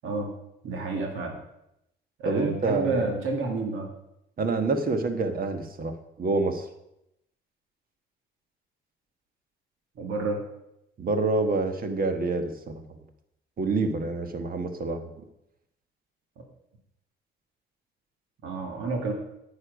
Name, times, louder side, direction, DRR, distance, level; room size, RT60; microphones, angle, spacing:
voice 1, 0.0-0.3 0.6-1.3 2.2-3.9 10.0-10.4 18.4-19.1, right 3 dB, 85° right, 2 dB, 2.0 m, -29 dB
voice 2, 2.2-3.0 4.4-6.7 11.0-12.8 13.6-15.1, right 3 dB, 45° right, 7 dB, 1.4 m, -27 dB
9.7 x 8.8 x 5.2 m, 0.83 s
cardioid pair, 90°, 20 cm